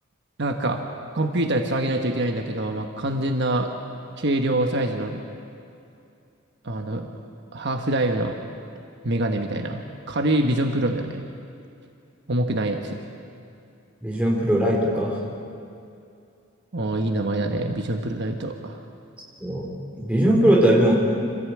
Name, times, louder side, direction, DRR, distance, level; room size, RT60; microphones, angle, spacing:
voice 1, 0.4-0.8 1.1-3.7 4.2-5.2 6.6-7.1 7.5-8.4 9.0-9.8 10.1-11.2 12.3-13.0 16.7-18.8, right 1 dB, 60° right, 4 dB, 1.2 m, -25 dB
voice 2, 14.0-15.2 19.4-19.7 20.0-21.1, right 1 dB, 5° right, -3 dB, 3.7 m, -20 dB
26.0 x 15.0 x 8.6 m, 2.6 s
head